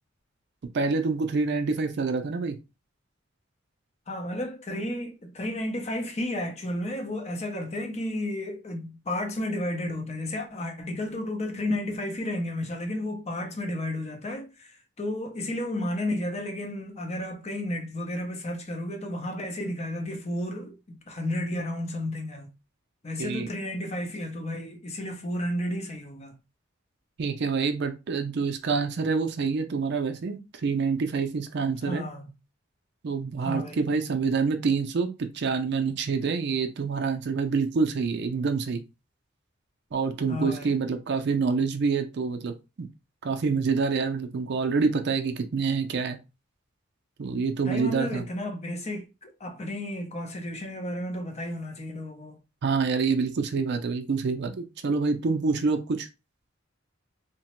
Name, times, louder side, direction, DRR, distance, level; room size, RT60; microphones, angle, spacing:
voice 1, 0.7-2.6 23.2-23.5 27.2-32.1 33.0-38.8 39.9-42.9 43.2-46.2 47.2-48.2 52.6-56.1, right 4 dB, 60° right, 0.4 m, -27 dB
voice 2, 4.1-22.5 23.0-26.4 31.8-32.3 33.4-33.9 40.3-40.8 47.6-52.4, left 1 dB, 35° left, 0.6 m, -32 dB
2.9 x 2.1 x 2.9 m
head